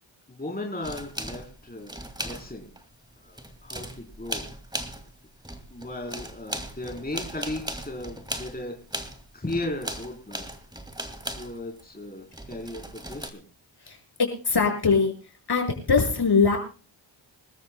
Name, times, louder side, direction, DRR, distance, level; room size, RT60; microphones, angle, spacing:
voice 1, 0.3-2.0 2.2-2.7 3.2-4.5 5.7-8.7 9.3-10.5 11.3-13.4, left 1 dB, 20° left, 0 dB, 3.9 m, -36 dB
sound 1, 0.8-2.8 3.1-5.2 5.4-11.8 12.3-13.3, right 1 dB, 10° right, 2.3 m, -37 dB
voice 2, 14.2-15.1 15.5-16.6, left 5 dB, 50° left, 3 dB, 6.4 m, -21 dB
26.5 x 13.5 x 2.2 m, 0.37 s
cardioid pair, 75°, 48 cm